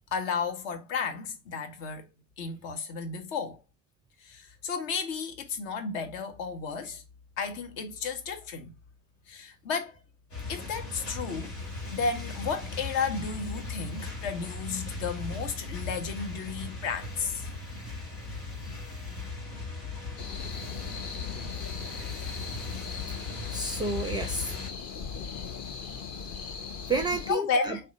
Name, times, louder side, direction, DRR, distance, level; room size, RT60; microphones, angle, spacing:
voice 1, 0.1-2.1 2.4-3.6 4.2-7.0 7.4-8.7 9.3-10.0 10.5-11.6 11.9-17.5 22.7-22.8 27.3-27.8, left 5 dB, 55° left, 1.0 m, -33 dB
sound 1, 10.3-24.7, left 3 dB, 85° left, 1.3 m, -38 dB
sound 2, 20.2-27.4, left 6 dB, 35° left, 0.7 m, -39 dB
voice 2, 23.1-24.6 26.9-27.8, right 3 dB, 10° right, 0.4 m, -31 dB
3.3 x 2.7 x 3.8 m
figure-of-eight pair, 70°, 47 cm